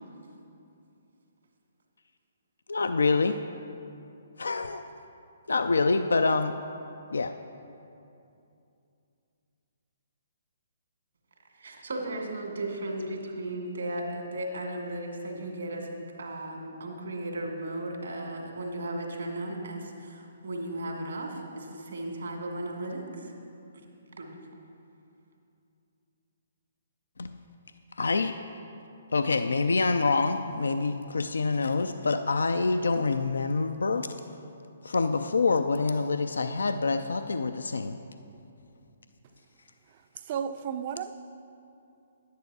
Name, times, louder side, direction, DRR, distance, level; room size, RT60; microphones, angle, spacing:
voice 1, 2.7-3.4 4.4-4.8 5.5-6.6 7.1-7.3 27.2-27.3 28.0-28.3 29.1-34.1 34.8-38.0, left 3 dB, 80° left, 9 dB, 0.4 m, -26 dB
voice 2, 11.5-23.3 23.7-23.9 24.2-24.4, right 1 dB, 75° right, 2 dB, 2.0 m, -36 dB
voice 3, 39.9-41.1, right 8 dB, 40° right, 10 dB, 0.5 m, -34 dB
11.0 x 9.3 x 4.7 m, 2.7 s
figure-of-eight pair, 135°, 0 cm